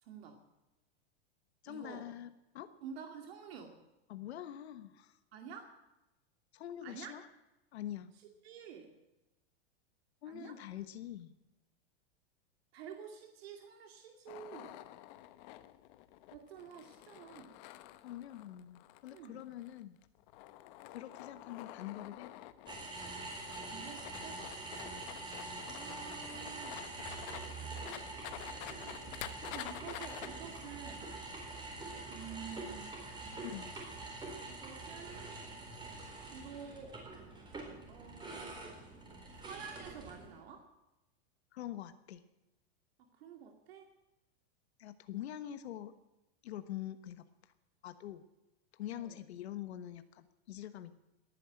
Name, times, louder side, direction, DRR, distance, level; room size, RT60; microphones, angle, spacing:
voice 1, 0.0-0.4 1.7-2.1 2.8-3.8 5.3-5.7 6.8-7.1 8.4-8.9 10.3-10.6 12.7-14.8 16.3-17.5 19.1-19.4 23.5-24.6 25.6-27.0 28.8-31.1 32.1-33.4 34.4-35.4 36.2-37.0 37.9-38.7 39.4-40.7 43.0-43.9 45.4-45.6 48.9-49.2, right 7 dB, 70° right, 4 dB, 2.5 m, -50 dB
voice 2, 1.6-2.7 4.1-5.2 6.5-7.3 7.7-8.1 10.2-11.3 18.0-20.0 20.9-22.4 33.4-33.7 41.5-42.2 44.8-45.9 46.4-47.2 47.8-48.2 48.7-50.9, left 12 dB, 80° left, 10 dB, 1.3 m, -45 dB
sound 1, 14.3-30.3, left 15 dB, 45° left, 1.0 m, -49 dB
sound 2, 22.7-40.4, right 2 dB, 15° right, 4.2 m, -45 dB
18.5 x 9.9 x 7.7 m, 1.0 s
supercardioid pair, 150°, 32 cm